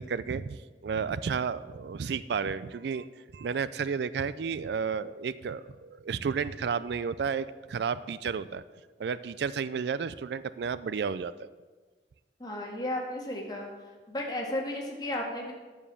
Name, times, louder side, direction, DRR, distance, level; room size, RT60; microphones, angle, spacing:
voice 1, 0.0-3.1 3.3-8.6 9.0-11.5, right 6 dB, 70° right, 16 dB, 0.4 m, -32 dB
voice 2, 12.4-13.7 14.1-15.5, left 1 dB, 25° left, 0 dB, 1.8 m, -34 dB
9.8 x 7.1 x 6.9 m, 1.4 s
head